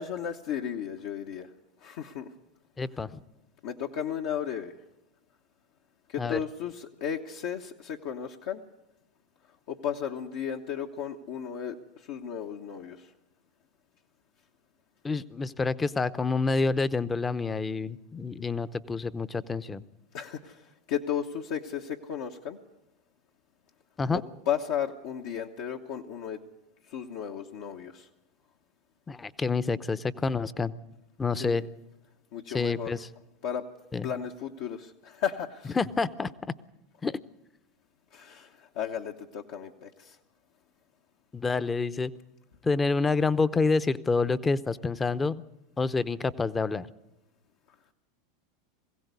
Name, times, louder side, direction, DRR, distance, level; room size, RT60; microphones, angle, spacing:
voice 1, 0.0-1.5 1.8-2.3 3.6-4.7 6.1-8.6 9.7-11.8 12.1-13.1 20.1-22.6 24.1-26.4 26.9-28.1 31.4-31.7 32.3-32.9 33.4-33.6 34.0-35.8 38.1-40.2, left 8 dB, 65° left, 1 dB, 1.1 m, -34 dB
voice 2, 2.8-3.2 6.2-6.4 15.0-19.8 24.0-24.2 29.1-30.7 31.2-31.6 32.5-33.1 33.9-34.1 35.8-36.3 37.0-37.2 41.3-42.1 42.6-45.4 45.8-46.9, left 4 dB, 20° left, 15 dB, 0.7 m, -28 dB
21.5 x 16.0 x 8.2 m, 0.97 s
hypercardioid pair, 95°, 0 cm